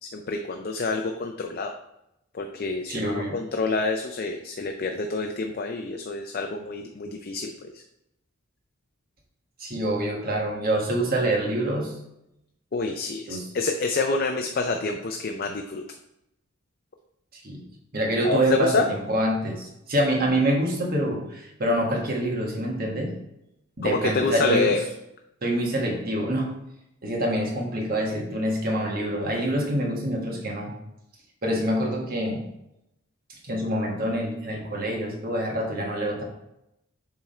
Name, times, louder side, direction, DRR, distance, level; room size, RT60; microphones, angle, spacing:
voice 1, 0.0-1.7 2.3-7.8 12.7-15.8 18.2-18.9 23.8-24.8, left 3 dB, 45° left, 4 dB, 0.5 m, -27 dB
voice 2, 2.9-3.4 9.6-12.0 13.3-13.5 17.3-17.6 17.9-23.2 23.8-24.7 25.4-26.5 27.0-30.8 31.4-32.4 33.3-36.2, right 1 dB, 45° right, 0 dB, 1.5 m, -26 dB
7.3 x 3.7 x 4.2 m, 0.83 s
head